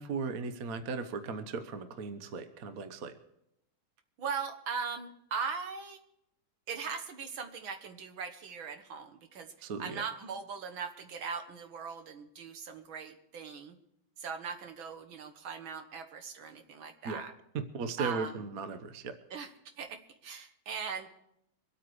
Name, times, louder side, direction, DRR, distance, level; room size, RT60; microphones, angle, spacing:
voice 1, 0.0-3.2 9.6-10.0 17.0-17.2 17.7-19.1, right 4 dB, 50° right, 9 dB, 1.3 m, -37 dB
voice 2, 4.2-6.0 6.7-13.8 14.2-17.3 18.0-18.4 19.3-19.5 19.8-21.1, right 6 dB, 70° right, 7 dB, 2.1 m, -39 dB
25.0 x 8.7 x 4.8 m, 0.80 s
omnidirectional pair, 2.3 m